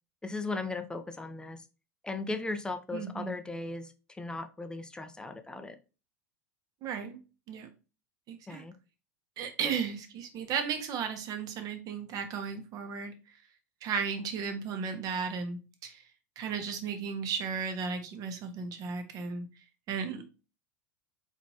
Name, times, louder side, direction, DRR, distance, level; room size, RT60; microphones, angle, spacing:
voice 1, 0.2-1.6 2.0-5.8 8.5-8.7, left 3 dB, 10° left, 8 dB, 0.7 m, -37 dB
voice 2, 2.9-3.3 6.8-7.2 7.5-7.7 8.3-8.6 9.4-13.1 13.8-16.0 16.4-19.5 19.9-20.4, right 6 dB, 45° right, 6 dB, 1.3 m, -35 dB
4.3 x 4.0 x 3.0 m, 0.31 s
hypercardioid pair, 95°, 9 cm